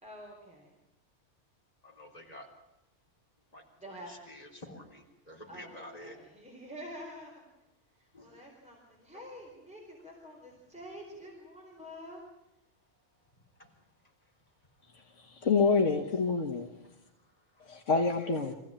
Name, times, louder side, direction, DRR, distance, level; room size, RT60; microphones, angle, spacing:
voice 1, 0.0-0.7 3.8-4.3 5.5-7.4 8.0-12.2, equal, 5° right, -2 dB, 4.2 m, -47 dB
voice 2, 1.8-2.5 3.5-6.2 8.1-8.3 9.1-9.2, left 1 dB, 30° left, 0 dB, 3.9 m, -49 dB
voice 3, 15.2-16.7 17.7-18.5, left 4 dB, 80° left, 2 dB, 1.8 m, -27 dB
25.5 x 16.0 x 8.9 m, 0.90 s
omnidirectional pair, 1.3 m